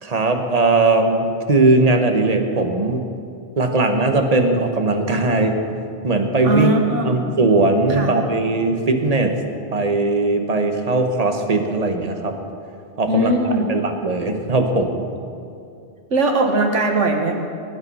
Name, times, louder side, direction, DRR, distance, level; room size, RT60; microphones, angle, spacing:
voice 1, 0.0-3.0 3.6-5.6 6.0-6.7 7.0-9.3 9.7-12.4 13.0-15.1, right 2 dB, 35° right, 5 dB, 1.2 m, -19 dB
voice 2, 6.4-7.3 7.9-8.1 13.1-13.7 16.1-17.3, right 2 dB, 85° right, 3 dB, 1.8 m, -19 dB
19.0 x 8.9 x 5.5 m, 2.5 s
omnidirectional pair, 1.2 m